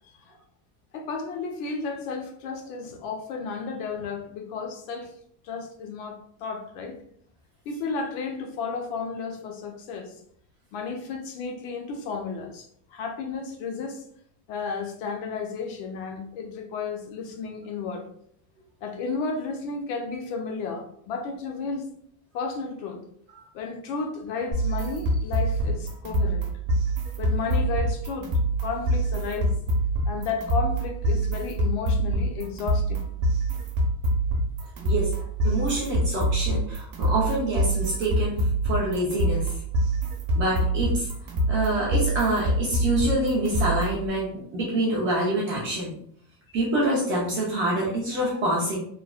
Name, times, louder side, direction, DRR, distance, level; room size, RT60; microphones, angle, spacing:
voice 1, 0.9-5.1 5.4-6.9 7.7-10.1 10.7-14.0 14.5-18.1 18.8-21.9 22.3-23.0 23.5-26.5 27.2-28.3 28.6-29.5 30.1-33.1, left 4 dB, 50° left, 3 dB, 0.5 m, -33 dB
sound 1, 24.5-44.1, right 1 dB, 50° right, 0.7 m, -25 dB
voice 2, 34.8-35.1 35.4-39.5 40.3-41.1 41.5-45.9 46.5-48.8, right 1 dB, 30° right, -5 dB, 0.3 m, -26 dB
3.1 x 2.0 x 2.3 m, 0.64 s
cardioid pair, 170°, 49 cm